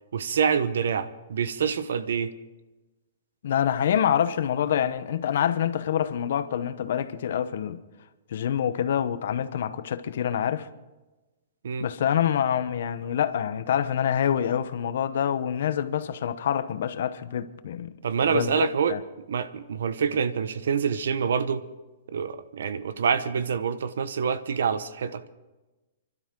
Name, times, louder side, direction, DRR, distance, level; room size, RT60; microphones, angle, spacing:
voice 1, 0.1-2.3 11.6-11.9 18.0-19.0 19.3-21.6 22.1-25.3, right 6 dB, 75° right, 1.0 m, -26 dB
voice 2, 3.4-7.8 8.3-10.7 11.8-17.9 18.2-19.0, left 9 dB, 60° left, 1.0 m, -26 dB
30.0 x 12.5 x 3.9 m
hypercardioid pair, 170°, 0 cm